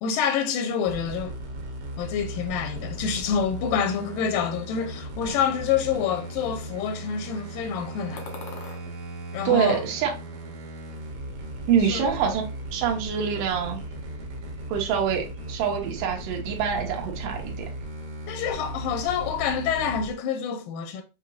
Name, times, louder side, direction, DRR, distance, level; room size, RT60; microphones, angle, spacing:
voice 1, 0.0-1.3 2.0-8.3 9.3-9.8 11.8-12.1 18.3-21.0, left 7 dB, 85° left, 2.3 m, -27 dB
sound 1, 0.8-20.1, right 1 dB, 60° right, 1.7 m, -37 dB
sound 2, 8.2-8.8 9.4-10.4 10.6-11.5, left 4 dB, 70° left, 1.1 m, -44 dB
voice 2, 9.4-10.1 11.7-12.4 12.7-13.8 14.7-17.7, right 7 dB, 75° right, 2.5 m, -25 dB
6.5 x 2.9 x 2.6 m
omnidirectional pair, 3.9 m